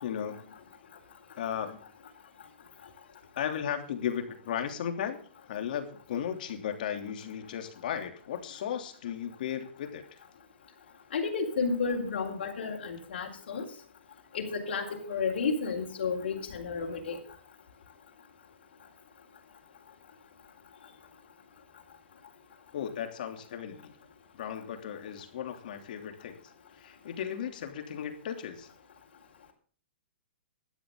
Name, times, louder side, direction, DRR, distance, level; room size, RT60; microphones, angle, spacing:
voice 1, 0.0-0.5 1.4-1.8 3.4-5.2 5.4-10.2 22.7-24.0 24.3-26.4 26.8-28.7, left 9 dB, 50° left, 6 dB, 3.1 m, -35 dB
voice 2, 11.1-13.7 14.3-17.2, left 5 dB, 65° left, -2 dB, 4.3 m, -32 dB
17.5 x 12.5 x 3.8 m, 0.43 s
hypercardioid pair, 165°, 6 cm